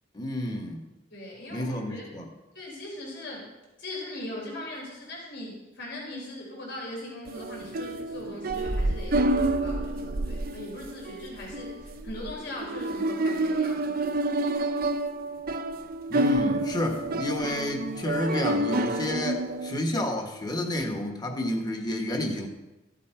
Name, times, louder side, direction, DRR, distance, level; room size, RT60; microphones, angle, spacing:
voice 1, 0.1-0.8 1.5-2.3 16.1-22.5, left 1 dB, 20° left, 3 dB, 1.4 m, -30 dB
voice 2, 1.1-2.1 2.5-3.5 3.8-14.0, left 1 dB, 65° left, -3 dB, 3.9 m, -40 dB
sound 1, 7.3-19.8, right 1 dB, 50° right, 0.7 m, -29 dB
14.0 x 8.3 x 4.6 m, 1.0 s
head